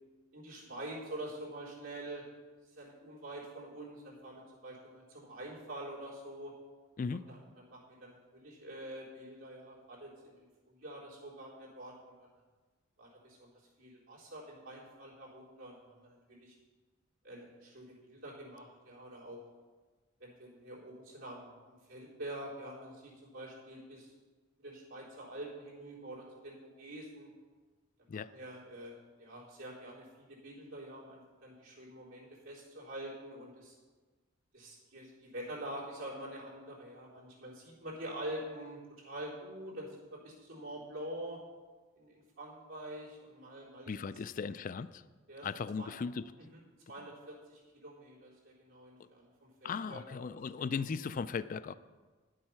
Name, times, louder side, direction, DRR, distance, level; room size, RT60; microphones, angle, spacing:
voice 1, 0.3-2.2 2.8-6.5 7.1-7.4 7.7-12.3 13.0-13.5 13.8-16.6 17.2-19.4 20.2-24.1 24.6-27.3 28.1-28.9 29.2-33.7 34.5-41.4 42.0-43.9 45.3-45.5 45.8-45.9 46.5-46.6 46.9-50.8, right 1 dB, 90° right, -6 dB, 3.8 m, -46 dB
voice 2, 43.9-45.0 45.4-46.3 49.6-51.7, left 5 dB, 45° left, 15 dB, 0.3 m, -37 dB
10.5 x 7.6 x 5.6 m, 1.3 s
head